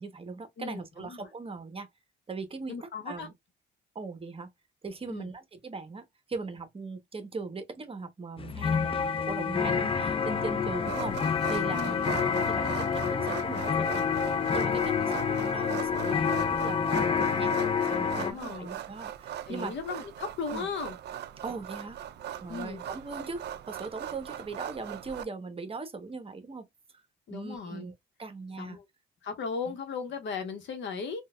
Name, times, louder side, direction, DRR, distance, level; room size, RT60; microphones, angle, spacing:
voice 1, 0.0-1.9 2.3-3.3 3.9-4.5 4.8-6.0 6.3-14.2 14.5-19.7 20.5-20.7 21.4-22.0 22.4-26.6 27.3-27.9 28.2-28.8, right 4 dB, 30° right, 0.8 m, -39 dB
voice 2, 0.6-1.2 2.7-3.3 5.1-5.3 9.6-9.9 11.7-12.0 18.2-18.7 19.5-21.0 22.5-22.8 27.3-27.9 28.6-28.8 29.2-31.2, left 5 dB, 65° left, 1.0 m, -37 dB
sound 1, 8.4-18.3, left 6 dB, 30° left, 0.4 m, -28 dB
sound 2, 10.8-25.2, right 11 dB, 60° right, 0.4 m, -40 dB
3.8 x 2.3 x 2.2 m
cardioid pair, 90°, 20 cm